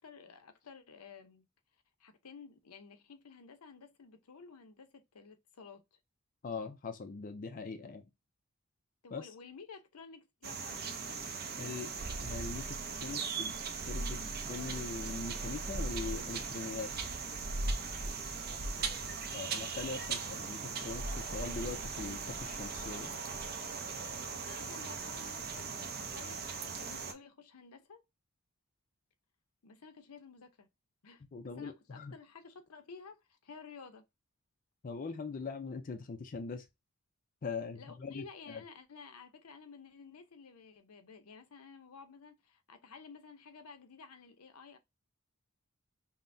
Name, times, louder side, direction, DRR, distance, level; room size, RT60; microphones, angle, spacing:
voice 1, 0.0-1.4 2.0-6.0 9.0-12.2 18.6-19.3 24.2-28.0 29.6-30.7 31.0-34.0 37.7-44.8, left 5 dB, 85° left, 0.7 m, -53 dB
voice 2, 6.4-8.0 9.1-9.2 11.6-11.9 12.2-13.5 13.9-16.9 19.3-23.2 31.3-32.1 34.8-36.6 37.4-38.6, left 4 dB, 40° left, 0.4 m, -41 dB
sound 1, 10.4-27.1, right 4 dB, 45° right, 0.6 m, -38 dB
5.4 x 2.1 x 2.6 m
head